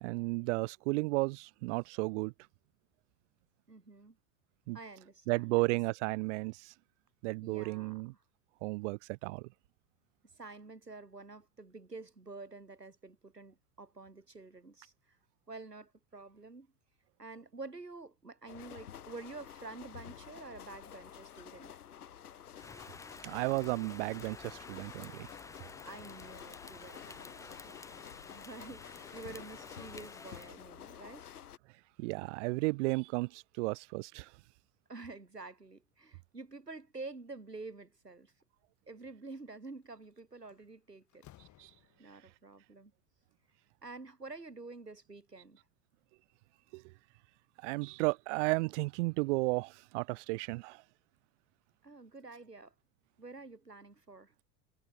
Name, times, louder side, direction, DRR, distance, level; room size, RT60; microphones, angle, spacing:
voice 1, 0.0-2.3 4.7-4.8 5.3-6.7 7.2-8.1 8.6-9.5 23.2-25.3 32.0-34.3 41.6-41.7 46.7-46.8 47.6-50.8, right 25 dB, 50° right, 1.0 m, -33 dB
voice 2, 3.7-4.2 4.7-5.6 7.4-8.0 10.3-15.2 15.5-16.7 17.2-21.8 25.9-31.3 34.9-38.3 38.9-41.3 42.0-42.9 43.8-45.6 51.8-52.7 53.2-54.3, right 3 dB, 85° right, 3.8 m, -49 dB
sound 1, 18.5-31.6, left 9 dB, 70° left, 2.7 m, -50 dB
Rain, 22.6-30.5, left 3 dB, 5° left, 0.7 m, -52 dB
Slam, 39.8-40.1 40.5-42.4, left 14 dB, 35° left, 4.7 m, -60 dB
figure-of-eight pair, 80°, 47 cm